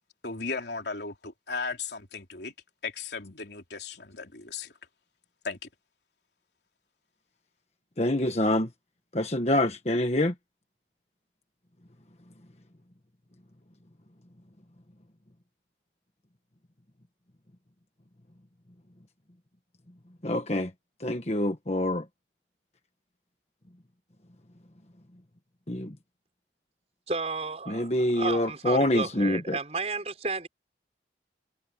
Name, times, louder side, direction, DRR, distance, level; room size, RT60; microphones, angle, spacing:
voice 1, 0.2-2.5 2.8-4.7 5.4-5.7, left 4 dB, 75° left, 3.3 m, -36 dB
voice 2, 8.0-8.7 9.1-10.3 20.2-20.7 21.0-22.0 25.7-26.0 27.7-29.6, left 1 dB, 35° left, 1.4 m, -26 dB
voice 3, 27.1-30.5, right 3 dB, 35° right, 5.2 m, -32 dB
head